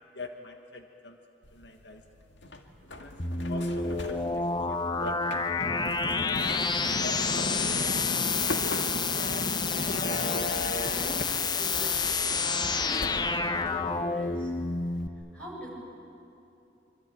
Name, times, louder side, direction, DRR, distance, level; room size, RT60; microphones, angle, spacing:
voice 1, 0.1-1.2 1.5-2.1 2.8-6.1 7.0-8.4, left 2 dB, 70° left, 4 dB, 1.5 m, -44 dB
sound 1, 1.4-15.1, left 1 dB, 90° left, 2.0 m, -44 dB
sound 2, 3.2-15.1, left 4 dB, 25° left, 0.8 m, -29 dB
sound 3, 5.6-11.2, left 1 dB, 45° left, 1.4 m, -34 dB
voice 2, 10.8-12.0 12.4-14.9 15.3-15.7, right 1 dB, 5° left, -3 dB, 7.2 m, -43 dB
25.5 x 24.5 x 9.1 m, 2.8 s
head